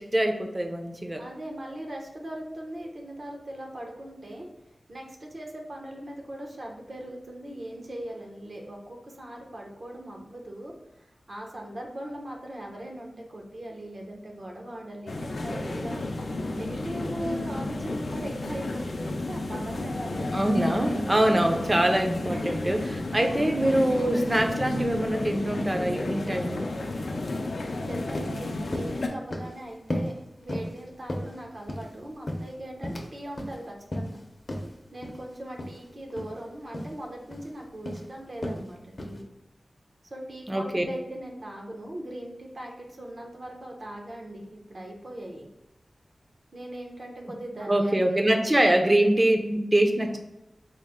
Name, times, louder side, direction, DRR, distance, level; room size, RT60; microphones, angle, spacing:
voice 1, 0.0-1.2 20.2-26.7 40.5-40.8 47.7-50.2, right 1 dB, 25° right, 4 dB, 0.5 m, -24 dB
voice 2, 1.2-4.5 4.9-10.7 11.3-21.0 22.2-22.7 27.9-30.1 30.4-34.2 34.9-39.3 40.0-45.5 46.5-48.9, right 1 dB, 60° right, 0 dB, 0.8 m, -39 dB
sound 1, 15.1-29.1, left 2 dB, 90° left, 0.4 m, -32 dB
sound 2, 27.8-27.9 28.1-28.4 28.7-29.0 29.3-29.6 29.9-30.2 30.5-30.8 31.1-31.9 32.3-33.1 33.4-33.6 33.9-34.2 34.5-34.7 35.0-35.2 35.6-35.8 36.1-36.3 36.7-36.9 37.3-37.5 37.8-38.1 38.4-38.6 39.0-39.2, left 1 dB, 40° left, 0.6 m, -33 dB
4.2 x 2.0 x 3.5 m, 0.92 s
wide cardioid pair, 75°, 0 cm